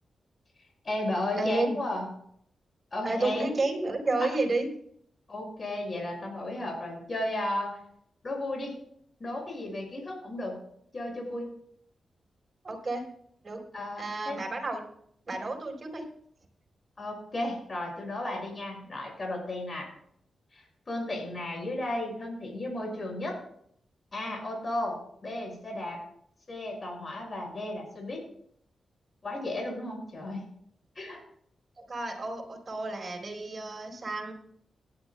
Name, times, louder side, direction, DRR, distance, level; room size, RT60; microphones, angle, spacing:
voice 1, 0.8-2.1 2.9-3.5 4.2-4.3 5.3-7.8 8.2-8.7 9.2-10.6 10.9-11.5 13.7-14.4 17.0-19.9 20.5-23.3 24.1-26.0 26.5-28.2 29.2-30.4 31.0-31.2, left 1 dB, 45° left, 0 dB, 5.8 m, -34 dB
voice 2, 1.4-1.8 3.0-4.7 12.6-13.0 13.4-13.6 14.0-14.8 15.3-16.0 31.8-34.3, right 2 dB, 45° right, 0 dB, 4.3 m, -31 dB
18.5 x 11.5 x 2.3 m, 0.67 s
cardioid pair, 65°, 0 cm